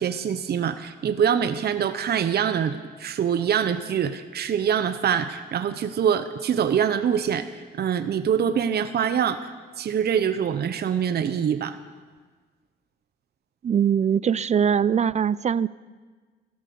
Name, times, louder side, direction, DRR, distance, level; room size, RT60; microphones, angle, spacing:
voice 1, 0.0-9.5 9.8-11.8, right 8 dB, 55° right, 9 dB, 0.9 m, -24 dB
voice 2, 13.6-15.7, right 8 dB, 35° right, 19 dB, 0.4 m, -22 dB
15.0 x 13.5 x 7.0 m, 1.4 s
cardioid pair, 90°, 20 cm